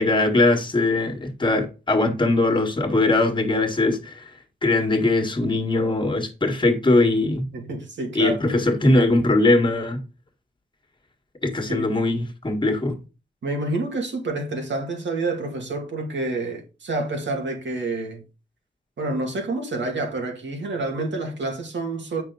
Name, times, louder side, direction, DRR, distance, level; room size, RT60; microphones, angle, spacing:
voice 1, 0.0-4.3 4.6-7.5 8.1-10.0 11.4-13.0, left 2 dB, 25° left, 1.6 m, -21 dB
voice 2, 7.5-8.4 11.7-11.9 13.4-18.2 19.0-22.2, right 2 dB, 85° right, 2.3 m, -28 dB
8.5 x 5.9 x 3.9 m
wide cardioid pair, 135°, 18 cm